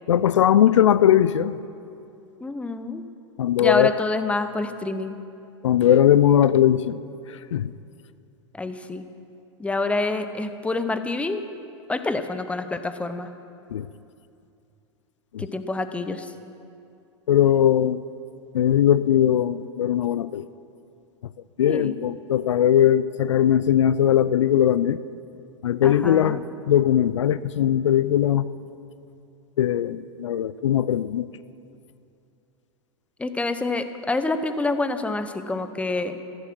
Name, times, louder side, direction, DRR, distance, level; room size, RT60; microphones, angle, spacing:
voice 1, 0.1-1.6 3.4-3.9 5.6-7.0 7.3-7.7 13.7-13.9 15.3-15.4 17.3-18.0 18.5-20.5 21.6-25.0 25.6-28.5 29.6-31.3, left 10 dB, 80° left, 16 dB, 0.4 m, -19 dB
voice 2, 2.4-3.0 3.6-5.2 8.5-9.0 9.6-11.4 11.9-13.3 15.4-16.3 21.7-22.0 25.8-26.4 33.2-36.2, left 2 dB, 10° left, 10 dB, 0.9 m, -27 dB
14.5 x 13.0 x 6.1 m, 2.6 s
hypercardioid pair, 105°, 15 cm